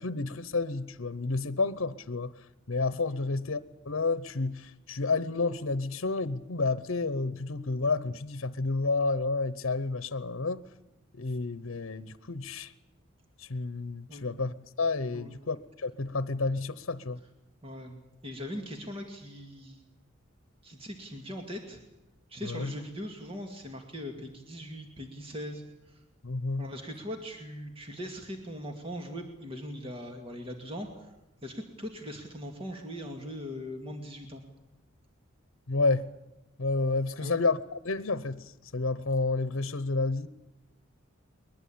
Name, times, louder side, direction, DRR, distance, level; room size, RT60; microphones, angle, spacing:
voice 1, 0.0-3.6 3.8-10.6 11.1-12.7 13.4-17.2 22.4-22.7 26.2-26.6 35.7-36.1 36.6-40.3, left 3 dB, 75° left, 14 dB, 0.9 m, -30 dB
voice 2, 17.6-19.8 20.6-21.8 22.3-26.0 26.6-31.1 31.4-34.4 37.2-37.4, equal, 30° right, 3 dB, 2.3 m, -40 dB
21.5 x 21.0 x 8.7 m, 0.94 s
head